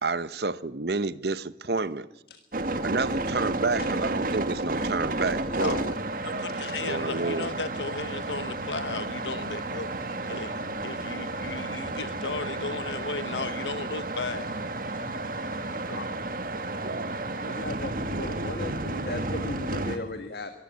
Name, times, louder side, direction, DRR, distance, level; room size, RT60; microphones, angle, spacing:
voice 1, 0.0-2.1 2.8-5.9 6.8-7.5 16.8-17.1, right 3 dB, 65° right, 1.0 m, -29 dB
sound 1, 2.5-20.0, right 2 dB, 50° right, 1.7 m, -32 dB
voice 2, 5.5-5.9 6.2-10.0 10.3-14.6 15.9-16.1, left 4 dB, 85° left, 1.2 m, -35 dB
sound 2, 7.3-15.8, equal, 25° left, 3.7 m, -51 dB
voice 3, 17.4-20.5, left 2 dB, 60° left, 1.7 m, -36 dB
23.0 x 15.0 x 9.6 m
head